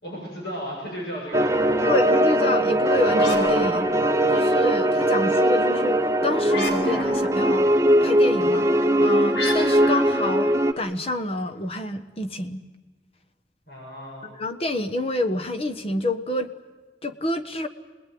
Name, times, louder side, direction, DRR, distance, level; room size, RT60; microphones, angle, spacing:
voice 1, 0.0-1.9 13.7-14.3, equal, 65° left, -3 dB, 7.5 m, -35 dB
sound 1, 1.3-10.7, right 1 dB, 15° right, 0.8 m, -20 dB
voice 2, 1.8-3.9 4.3-7.7 8.0-12.6 14.4-16.5 17.0-17.7, left 1 dB, 35° left, 7 dB, 1.3 m, -28 dB
sound 2, 3.1-4.6 6.4-7.5 9.3-11.2, left 2 dB, 80° left, 4.4 m, -32 dB
27.0 x 20.0 x 9.5 m, 1.3 s
head